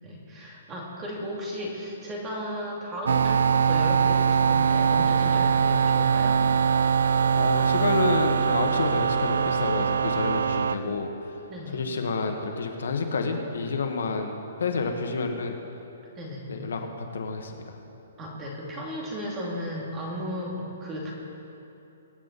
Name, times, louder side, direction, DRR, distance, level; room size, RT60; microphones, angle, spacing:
voice 1, 0.0-6.5 11.5-11.9 16.2-16.5 18.2-21.1, equal, 15° right, -3 dB, 2.1 m, -35 dB
sound 1, 3.1-10.8, right 6 dB, 85° right, 0.6 m, -22 dB
voice 2, 7.3-11.3 11.7-15.6 16.5-17.8, left 4 dB, 75° left, 4 dB, 1.6 m, -29 dB
23.5 x 9.2 x 4.2 m, 2.9 s
hypercardioid pair, 180°, 0 cm